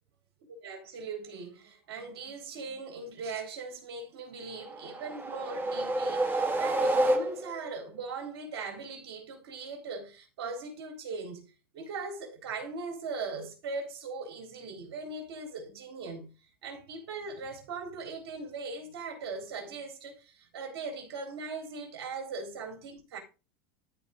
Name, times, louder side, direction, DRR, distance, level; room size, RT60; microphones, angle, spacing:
voice 1, 0.6-11.4 11.7-16.3 16.6-23.2, right 4 dB, 75° right, 3.7 m, -40 dB
sound 1, 4.6-7.7, right 1 dB, 15° right, 2.1 m, -29 dB
13.5 x 4.8 x 3.9 m
hypercardioid pair, 105°, 13 cm